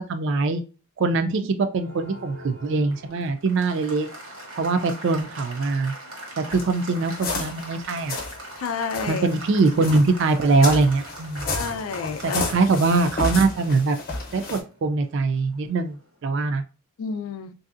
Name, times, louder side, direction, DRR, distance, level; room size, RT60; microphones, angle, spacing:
voice 1, 0.1-0.6 1.0-4.1 4.5-5.9 6.4-8.2 9.1-11.4 12.2-14.0 14.3-16.6, right 3 dB, 55° right, 0.3 m, -22 dB
Applause, 1.7-16.1, right 1 dB, 80° right, 1.0 m, -42 dB
sound 1, 6.5-8.4 8.8-14.6, left 3 dB, 40° left, 0.8 m, -32 dB
voice 2, 8.6-9.3 11.5-12.4 17.0-17.5, left 5 dB, 70° left, 0.4 m, -30 dB
3.2 x 2.6 x 2.4 m
head